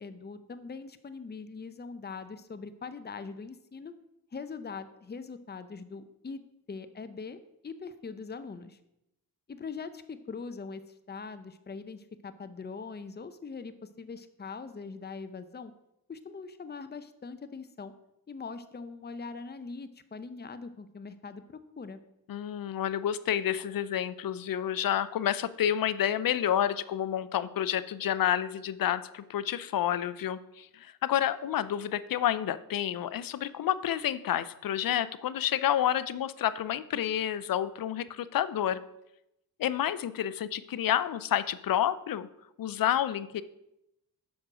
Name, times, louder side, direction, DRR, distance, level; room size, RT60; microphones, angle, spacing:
voice 1, 0.0-3.9 4.3-6.4 6.7-8.8 9.5-10.8 11.1-15.7 16.1-17.9 18.3-22.0, left 4 dB, 25° left, 11 dB, 0.7 m, -42 dB
voice 2, 22.3-38.8 39.6-42.3 42.6-43.4, left 10 dB, 65° left, 15 dB, 0.6 m, -29 dB
7.1 x 6.3 x 5.0 m, 0.83 s
cardioid pair, 55°, 37 cm